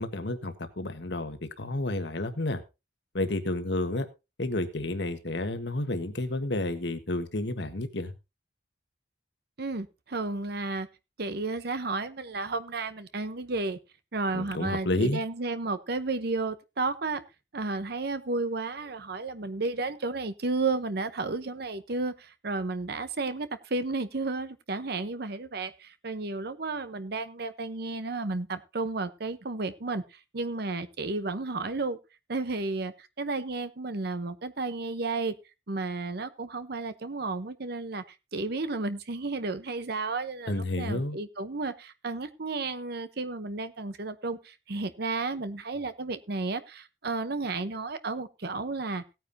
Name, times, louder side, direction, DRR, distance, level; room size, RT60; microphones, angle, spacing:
voice 1, 0.0-2.6 3.1-4.1 4.4-8.1 14.3-15.2 40.5-41.2, left 2 dB, 65° left, 8 dB, 1.5 m, -30 dB
voice 2, 9.6-10.9 11.2-13.8 14.1-17.2 17.5-32.0 32.3-35.3 35.7-38.0 38.3-49.0, right 3 dB, 60° right, 11 dB, 0.9 m, -32 dB
17.5 x 9.2 x 2.8 m, 0.26 s
head